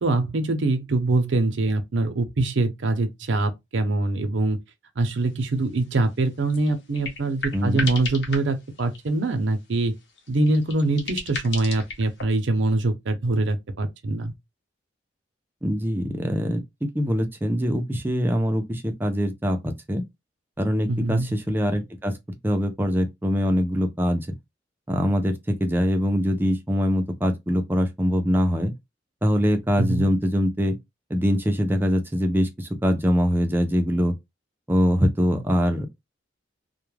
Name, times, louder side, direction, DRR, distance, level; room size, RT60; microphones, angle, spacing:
voice 1, 0.0-4.6 5.0-9.9 10.3-14.3 20.9-21.3 29.8-30.1, right 2 dB, 70° right, 0.6 m, -24 dB
sound 1, 5.1-5.2 5.5-5.6 5.8-6.0 6.3-9.3 9.8-12.2, left 3 dB, 65° left, 0.8 m, -35 dB
voice 2, 7.5-7.9 15.6-20.0 20.6-22.1 22.4-24.3 24.9-28.7 29.2-30.8 31.1-34.1 34.7-35.9, equal, 10° right, 0.4 m, -23 dB
2.2 x 2.1 x 3.1 m
head